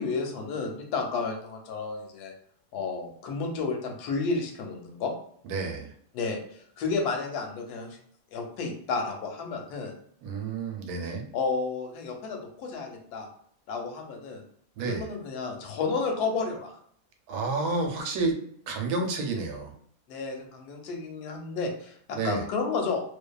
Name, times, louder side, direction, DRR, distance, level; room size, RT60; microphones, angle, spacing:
voice 1, 0.0-2.3 2.7-5.1 6.1-8.0 8.3-9.9 11.3-13.3 13.7-14.4 14.8-16.7 20.1-23.0, left 4 dB, 85° left, 1 dB, 1.1 m, -31 dB
voice 2, 5.4-5.9 10.2-11.3 14.8-15.1 17.3-18.4 18.7-19.7 22.1-22.4, right 3 dB, 80° right, 3 dB, 1.1 m, -30 dB
2.6 x 2.3 x 2.2 m, 0.64 s
omnidirectional pair, 1.7 m